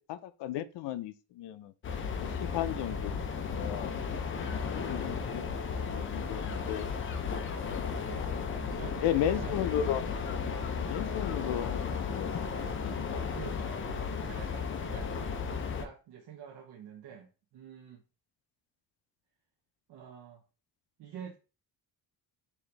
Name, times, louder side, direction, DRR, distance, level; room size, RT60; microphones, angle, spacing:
voice 1, 0.0-1.7 2.2-4.0 4.7-6.9 7.5-7.9 8.8-10.0 10.9-12.3 12.6-13.2, left 11 dB, 85° left, 0.5 m, -35 dB
sound 1, 1.8-15.9, left 5 dB, 30° left, 0.4 m, -34 dB
voice 2, 4.6-5.0 7.9-8.3 8.7-9.8 13.3-15.3 15.8-18.0 19.9-20.4 21.0-21.4, right 8 dB, 75° right, 0.7 m, -48 dB
4.2 x 2.7 x 3.2 m
cardioid pair, 165°, 41 cm